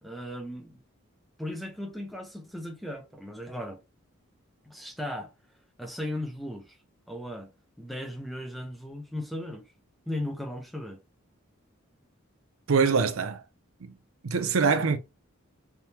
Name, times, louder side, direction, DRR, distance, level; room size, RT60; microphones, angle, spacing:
voice 1, 0.0-0.8 1.4-3.8 4.6-5.3 5.8-6.8 7.1-7.5 7.8-9.6 10.1-11.0, left 1 dB, ahead, 0.7 m, -36 dB
voice 2, 12.7-13.4 13.8-13.9 14.2-15.0, right 5 dB, 75° right, 0.5 m, -24 dB
3.5 x 3.0 x 2.8 m
head